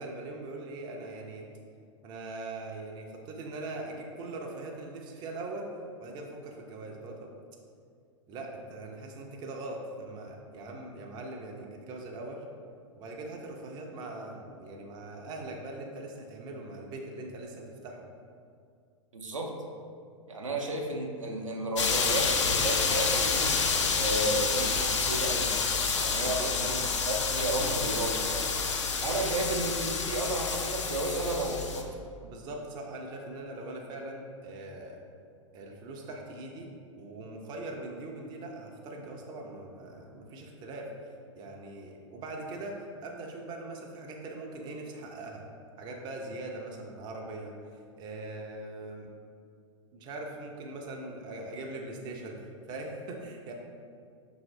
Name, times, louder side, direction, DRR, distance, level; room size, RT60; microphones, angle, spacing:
voice 1, 0.0-1.4 2.0-5.7 6.0-7.3 8.3-12.4 12.9-18.1 26.4-26.5 29.1-29.4 32.2-35.0 35.5-40.9 41.4-45.5 45.8-49.1 49.9-53.5, right 2 dB, 25° right, 0 dB, 0.5 m, -41 dB
voice 2, 19.1-19.5 20.3-25.5 26.0-28.6 29.0-31.9, right 2 dB, 75° right, 0 dB, 0.6 m, -33 dB
sound 1, 21.8-31.8, left 5 dB, 65° left, 0.5 m, -29 dB
5.6 x 2.7 x 3.2 m, 2.3 s
figure-of-eight pair, 95°, 16 cm